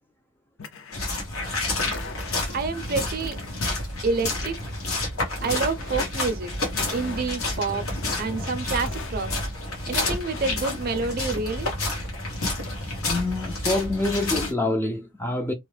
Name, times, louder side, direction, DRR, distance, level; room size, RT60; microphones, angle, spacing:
sound 1, 0.6-1.2 1.7-2.6 3.2-3.8 4.1-4.9 5.4-6.1 6.7-7.5 7.9-8.4 8.7-9.5 9.8-10.5, left 4 dB, 60° left, 0.5 m, -41 dB
sound 2, 0.9-14.5, left 2 dB, 85° left, 1.3 m, -29 dB
voice 1, 2.5-3.4 4.0-4.6 5.4-6.6 6.9-7.8 8.2-9.3 9.9-11.7, right 4 dB, 45° right, 0.5 m, -28 dB
voice 2, 13.0-15.5, left 2 dB, 10° left, 0.3 m, -26 dB
2.9 x 2.1 x 3.2 m
head